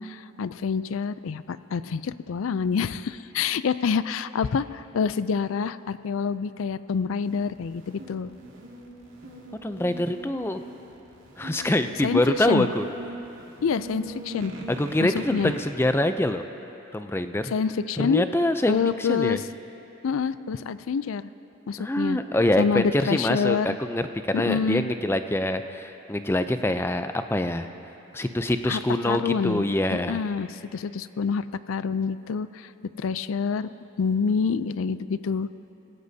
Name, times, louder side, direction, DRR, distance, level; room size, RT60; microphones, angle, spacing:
voice 1, 0.0-8.3 12.0-12.2 12.5-12.7 13.6-14.5 15.1-15.5 17.5-18.2 18.7-19.4 20.0-21.3 21.7-22.2 22.6-23.8 24.3-24.8 28.7-28.8 29.1-32.7 33.0-33.7 34.0-35.5, left 6 dB, 80° left, 15 dB, 0.4 m, -27 dB
sound 1, 7.2-15.7, right 1 dB, 80° right, 2.2 m, -41 dB
voice 2, 9.6-10.6 11.4-12.9 14.7-16.4 16.9-17.5 18.0-19.4 21.8-27.7 28.1-30.2, left 1 dB, 10° left, 8 dB, 0.4 m, -25 dB
27.0 x 16.5 x 2.8 m, 3.0 s
head